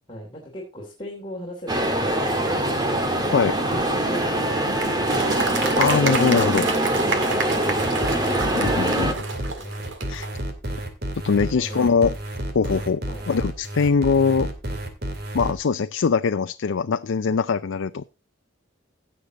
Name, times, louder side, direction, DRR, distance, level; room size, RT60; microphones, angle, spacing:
voice 1, 0.1-3.0 3.5-5.6 7.0-9.9 11.5-11.9 13.1-13.3, equal, 25° left, -2 dB, 3.0 m, -38 dB
sound 1, 1.7-9.1, right 1 dB, 20° right, 1.7 m, -23 dB
Applause, 4.8-10.3, right 4 dB, 70° right, 1.9 m, -29 dB
voice 2, 5.8-6.7 8.5-9.1 10.1-10.3 11.2-12.1 12.5-13.0 13.3-14.5 15.3-18.1, left 5 dB, 75° left, 10 dB, 0.4 m, -22 dB
sound 2, 7.6-15.5, right 1 dB, 50° right, 2.5 m, -31 dB
16.5 x 6.5 x 4.0 m, 0.29 s
head